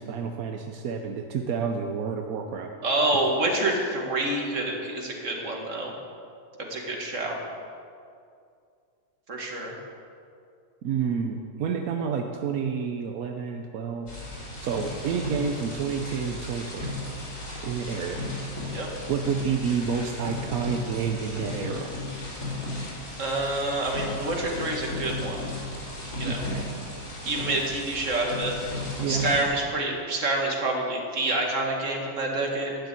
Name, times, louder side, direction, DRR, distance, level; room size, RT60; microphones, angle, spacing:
voice 1, 0.0-2.7 10.8-14.1 14.6-16.9 17.6-18.2 19.1-21.9 26.2-26.7 29.0-29.3, right 6 dB, 90° right, 3 dB, 1.2 m, -29 dB
voice 2, 2.8-5.9 6.7-7.4 9.3-9.7 18.7-18.9 23.2-25.4 26.2-26.4 27.2-28.5 29.1-32.9, right 2 dB, 60° right, 0 dB, 2.3 m, -27 dB
sound 1, 14.1-29.4, left 1 dB, 65° left, 4.0 m, -35 dB
12.0 x 6.9 x 9.7 m, 2.4 s
omnidirectional pair, 1.5 m